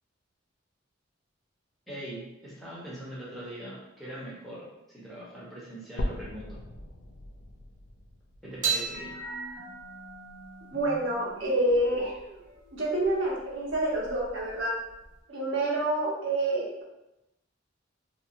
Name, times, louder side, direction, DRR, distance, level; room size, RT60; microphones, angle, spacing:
voice 1, 1.9-6.6 8.4-9.1, right 1 dB, ahead, -8 dB, 0.7 m, -42 dB
sound 1, 6.0-10.0 10.5-10.6 11.2-11.3 11.6-11.7 12.6-12.7, left 1 dB, 55° left, 0.3 m, -39 dB
sound 2, 8.6-15.2, right 5 dB, 40° right, 0.6 m, -38 dB
voice 2, 10.7-12.1 12.7-14.7 15.3-16.8, right 1 dB, 75° right, -4 dB, 0.8 m, -28 dB
2.8 x 2.3 x 2.4 m, 0.94 s
head